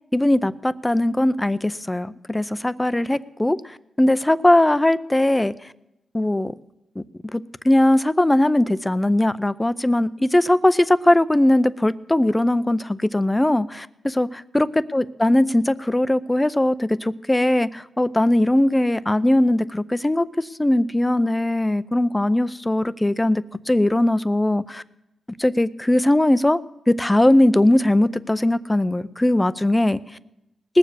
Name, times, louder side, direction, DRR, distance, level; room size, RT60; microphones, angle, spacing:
voice 1, 0.1-3.6 4.0-5.5 6.1-6.5 7.0-13.9 14.2-14.3 14.5-20.3 20.6-24.8 25.4-26.6 26.9-30.0, left 1 dB, 15° left, 16 dB, 0.5 m, -19 dB
19.5 x 7.3 x 7.0 m, 0.91 s
cardioid pair, 85°, 0 cm